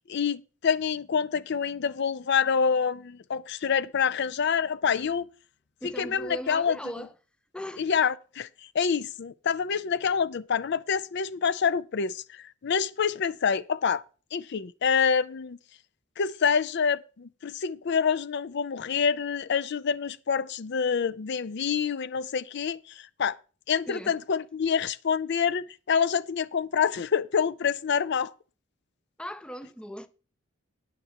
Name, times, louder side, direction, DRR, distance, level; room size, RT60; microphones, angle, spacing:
voice 1, 0.0-5.3 5.8-6.8 7.8-8.5 8.7-14.0 14.3-15.6 16.2-23.3 23.7-28.3, left 6 dB, 55° left, 0.5 m, -27 dB
voice 2, 5.8-7.1 7.5-7.8 23.9-24.1 29.2-30.1, equal, 5° left, 0.5 m, -38 dB
19.5 x 6.7 x 3.0 m
head